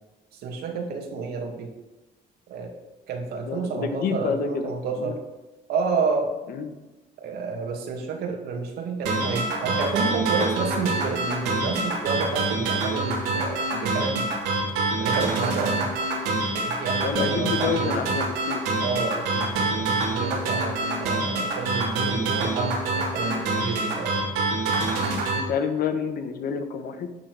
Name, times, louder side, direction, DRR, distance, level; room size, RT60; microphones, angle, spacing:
voice 1, 0.3-1.7 2.5-2.7 3.1-5.2 5.7-6.3 7.2-14.3 15.0-15.9 16.5-18.0 18.8-24.1, right 4 dB, 70° right, 2 dB, 2.3 m, -30 dB
voice 2, 3.4-4.7 5.0-5.2 6.5-6.7 17.0-18.6 25.3-27.1, left 6 dB, 60° left, 7 dB, 1.3 m, -28 dB
sound 1, 9.0-25.4, right 2 dB, 90° right, 3.1 m, -26 dB
11.5 x 4.3 x 8.1 m, 1.1 s
cardioid pair, 110°, 17 cm